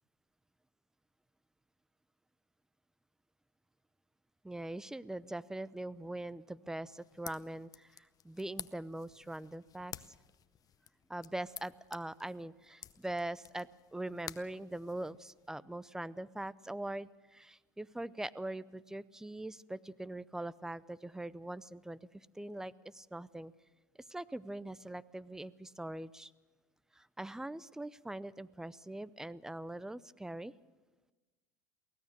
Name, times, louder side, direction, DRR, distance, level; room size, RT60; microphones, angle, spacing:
voice 1, 4.4-9.9 11.1-23.5 24.1-26.3 26.9-30.5, right 1 dB, 5° right, 19 dB, 0.6 m, -42 dB
sound 1, 6.9-15.5, left 9 dB, 35° left, 0.8 m, -52 dB
23.5 x 17.0 x 6.8 m, 1.2 s
hypercardioid pair, 90°, 11 cm